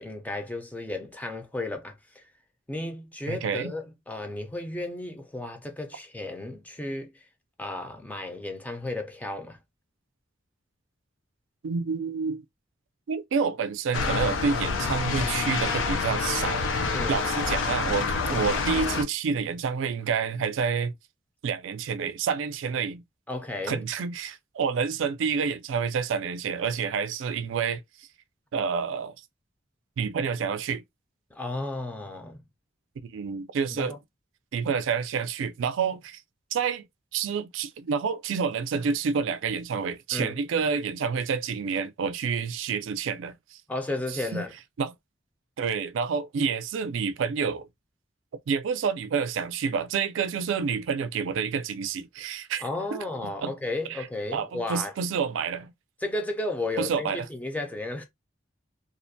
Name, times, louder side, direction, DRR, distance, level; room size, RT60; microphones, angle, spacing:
voice 1, 0.0-2.2 2.7-7.1 7.6-9.6 16.9-17.2 23.3-23.9 31.3-32.4 33.7-34.0 40.1-40.4 43.7-44.5 52.6-54.9 56.0-58.0, left 2 dB, 10° left, 0.4 m, -33 dB
voice 2, 3.3-3.7 11.6-12.4 13.1-16.6 17.1-20.9 21.4-23.0 23.7-27.8 28.5-29.1 30.0-30.8 33.0-34.0 34.5-36.2 36.5-36.8 37.1-43.3 44.3-44.4 44.8-44.9 45.6-47.7 48.5-52.6 52.9-53.0 53.4-53.5 53.9-54.1 54.3-55.7 56.8-57.3, right 6 dB, 85° right, 0.4 m, -28 dB
sound 1, 13.9-19.0, left 4 dB, 85° left, 0.4 m, -27 dB
2.4 x 2.1 x 2.6 m
head